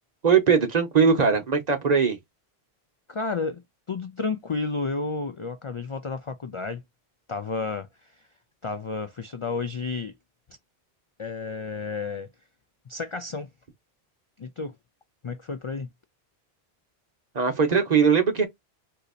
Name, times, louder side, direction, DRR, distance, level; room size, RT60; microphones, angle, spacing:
voice 1, 0.2-2.2 17.3-18.5, right 6 dB, 45° right, 0.9 m, -20 dB
voice 2, 3.1-3.6 3.9-6.8 7.3-8.3 8.6-10.1 11.2-12.3 12.9-13.5 14.4-14.7 15.2-15.9, left 4 dB, 45° left, 0.4 m, -31 dB
3.9 x 2.7 x 2.3 m
omnidirectional pair, 1.1 m